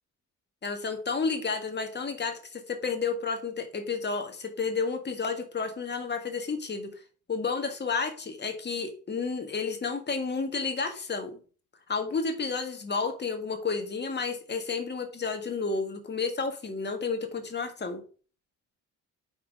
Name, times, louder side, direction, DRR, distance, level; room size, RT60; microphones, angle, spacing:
voice 1, 0.6-6.9 7.3-11.4 11.9-18.0, left 4 dB, 35° left, 6 dB, 1.8 m, -31 dB
5.9 x 4.5 x 6.3 m, 0.39 s
cardioid pair, 90°, 30 cm